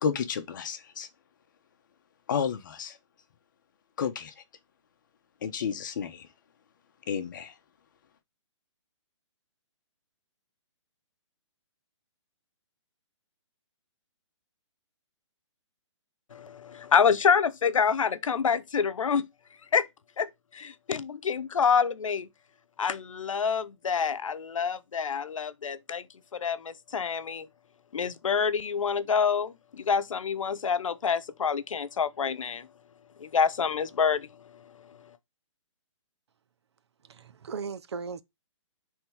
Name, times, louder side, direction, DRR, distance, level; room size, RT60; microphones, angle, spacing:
voice 1, 0.0-1.1 2.3-3.0 4.0-4.4 5.4-6.3 7.1-7.5, left 7 dB, 40° left, 1.0 m, -31 dB
voice 2, 16.3-19.3 19.7-19.9 20.2-22.3 22.8-26.1 26.3-27.5 27.9-32.7 33.2-35.1, left 6 dB, 90° left, 0.8 m, -27 dB
voice 3, 37.0-38.2, right 5 dB, 60° right, 0.8 m, -37 dB
8.7 x 3.6 x 4.7 m
hypercardioid pair, 170°, 16 cm